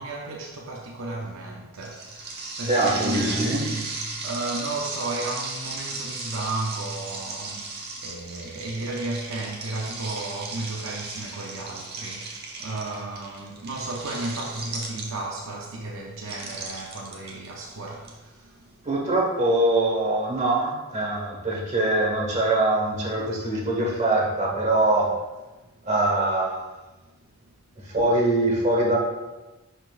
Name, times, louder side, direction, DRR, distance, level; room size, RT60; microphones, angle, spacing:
voice 1, 0.0-18.9, right 2 dB, 65° right, 0.6 m, -33 dB
sound 1, 1.8-15.4 16.2-18.1, right 3 dB, 50° right, 1.2 m, -36 dB
voice 2, 2.7-3.6 18.8-25.1 25.8-26.7 27.8-29.0, right 2 dB, 35° right, 1.5 m, -23 dB
10.5 x 4.3 x 2.5 m
head